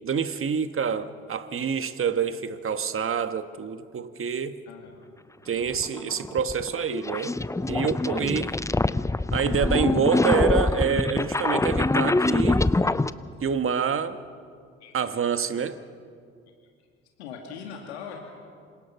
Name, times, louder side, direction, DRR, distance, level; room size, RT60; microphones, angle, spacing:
voice 1, 0.0-4.6 5.4-7.4 7.7-8.5 9.3-12.6 13.4-14.2 14.9-15.8, right 6 dB, 40° right, 10 dB, 1.7 m, -27 dB
voice 2, 4.7-5.1 8.1-8.4 14.8-15.5 17.2-18.2, left 7 dB, 85° left, 1 dB, 2.4 m, -42 dB
sound 1, 5.7-13.1, left 2 dB, 10° left, 0.7 m, -24 dB
28.0 x 27.0 x 5.9 m, 2.2 s
hypercardioid pair, 50°, 32 cm